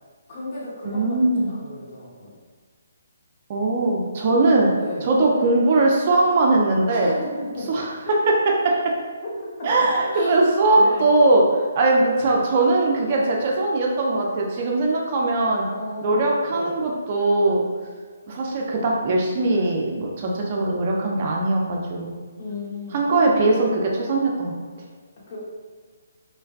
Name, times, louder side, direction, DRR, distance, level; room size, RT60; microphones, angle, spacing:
voice 1, 0.3-2.3 4.7-5.1 6.9-7.7 8.7-8.8 9.2-9.3 10.1-10.4 10.8-11.0 15.7-16.7 22.4-23.0 25.3-25.4, left 2 dB, 35° left, -8 dB, 0.9 m, -34 dB
voice 2, 0.8-1.5 3.5-4.7 5.0-7.1 7.7-7.9 8.3-8.4 9.6-11.4 11.7-15.7 16.0-17.6 18.3-22.1 22.9-24.5, right 2 dB, 40° right, -2 dB, 0.4 m, -20 dB
2.5 x 2.2 x 2.3 m, 1.5 s
figure-of-eight pair, 145°, 0 cm